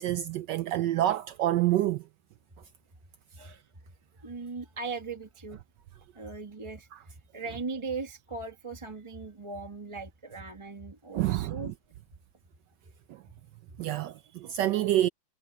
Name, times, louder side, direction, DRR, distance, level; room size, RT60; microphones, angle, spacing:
voice 1, 0.0-2.0 11.1-11.7 13.1-13.2 13.8-15.1, right 13 dB, 75° right, 1.1 m, -27 dB
voice 2, 4.2-5.6 6.1-11.7, right 4 dB, 15° right, 1.5 m, -39 dB
omnidirectional pair, 2.1 m